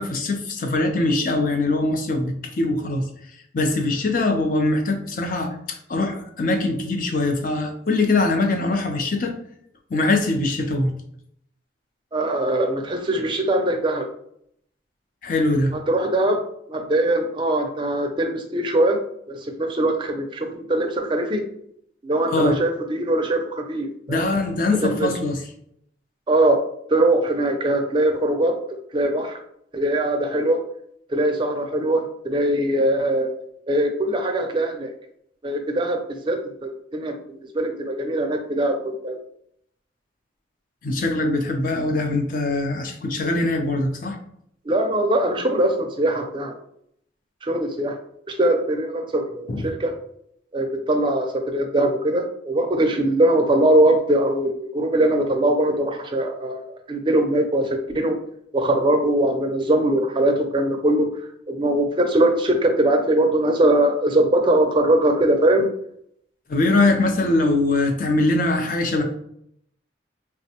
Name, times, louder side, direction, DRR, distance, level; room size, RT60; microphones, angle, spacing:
voice 1, 0.0-3.0 3.5-9.3 9.9-10.9 15.2-15.7 22.3-22.6 24.1-25.4 40.8-44.2 49.5-49.7 66.5-69.0, left 2 dB, 45° left, 4 dB, 0.5 m, -22 dB
voice 2, 12.1-14.1 15.9-16.4 16.7-19.0 19.3-21.4 22.0-24.2 24.8-25.1 26.3-26.6 26.9-29.4 29.7-30.6 31.1-33.3 33.7-34.9 35.4-39.2 44.7-46.6 47.4-47.9 48.3-49.9 50.5-58.2 58.5-61.1 61.5-65.7, right 1 dB, 25° right, 3 dB, 0.4 m, -21 dB
3.4 x 2.1 x 2.8 m, 0.70 s
head